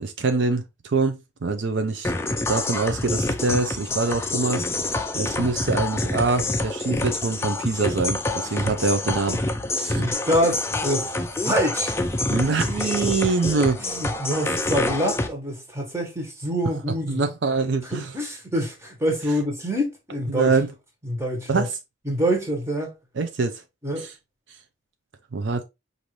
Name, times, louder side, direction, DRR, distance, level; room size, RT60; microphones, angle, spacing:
voice 1, 0.0-2.1 2.5-4.6 5.1-9.4 9.8-10.0 12.3-13.8 17.1-18.1 20.3-20.7 21.5-21.7 23.2-23.5 24.0-24.1 25.3-25.6, right 4 dB, 65° right, 0.5 m, -24 dB
sound 1, 2.0-15.3, left 2 dB, 15° left, 0.5 m, -27 dB
voice 2, 9.9-11.9 13.3-13.4 13.8-17.3 17.9-20.6 21.0-21.6 22.0-22.9 23.8-24.1, equal, 15° right, 1.2 m, -26 dB
5.2 x 2.6 x 3.0 m
head